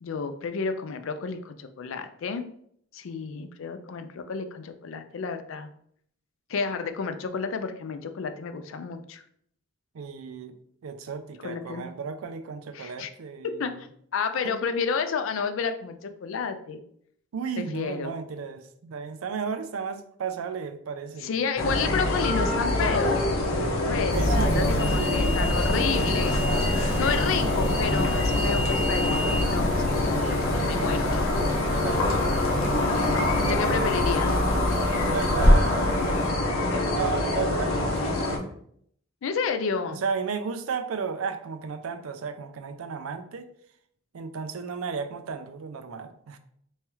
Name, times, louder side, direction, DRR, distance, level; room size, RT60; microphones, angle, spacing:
voice 1, 0.0-2.5 2.9-5.7 6.5-9.2 11.4-11.9 12.7-13.1 13.6-13.9 14.1-16.8 17.6-18.1 21.2-23.3 23.9-26.4 27.0-31.3 33.4-34.3 39.2-40.0, left 5 dB, 65° left, 9 dB, 0.4 m, -31 dB
voice 2, 9.9-10.6 10.8-13.9 14.4-14.5 17.3-21.3 24.1-27.0 31.8-32.2 33.7-34.1 35.0-36.0 36.9-38.6 39.9-43.5 44.1-46.4, right 5 dB, 90° right, 10 dB, 0.4 m, -34 dB
sound 1, 21.6-38.4, left 2 dB, 90° left, 0.8 m, -25 dB
sound 2, 24.1-36.3, equal, 50° left, 0.9 m, -27 dB
3.5 x 3.1 x 3.0 m, 0.66 s
head